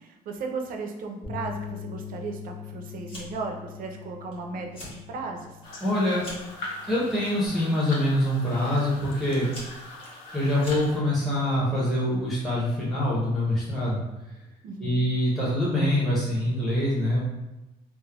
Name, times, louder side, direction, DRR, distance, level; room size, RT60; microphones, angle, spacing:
voice 1, 0.0-5.6 14.6-15.0, right 4 dB, 55° right, 3 dB, 0.4 m, -36 dB
Bass guitar, 1.2-7.5, left 8 dB, 50° left, 1.2 m, -42 dB
Fire, 3.0-3.5 3.9-4.3 4.6-5.0 5.4-6.6 7.4-7.7 8.6-8.7 9.2-11.2, left 1 dB, 35° left, 1.1 m, -43 dB
sound 1, 5.6-11.0, left 2 dB, 70° left, 0.7 m, -41 dB
voice 2, 5.8-6.2 6.9-9.5 10.3-14.0 14.8-17.2, left 1 dB, ahead, -8 dB, 0.7 m, -25 dB
3.2 x 2.1 x 2.2 m, 0.98 s
cardioid pair, 110°, 17 cm